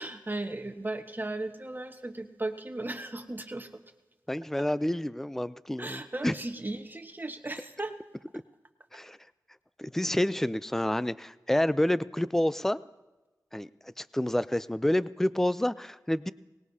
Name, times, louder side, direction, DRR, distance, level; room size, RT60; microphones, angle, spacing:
voice 1, 0.0-3.8 5.8-7.9, right 2 dB, 25° right, 6 dB, 1.2 m, -36 dB
voice 2, 4.3-6.3 8.9-9.2 9.8-12.8 13.5-16.3, left 1 dB, 5° left, 16 dB, 0.5 m, -28 dB
19.5 x 18.5 x 2.8 m, 1.1 s
cardioid pair, 45°, 7 cm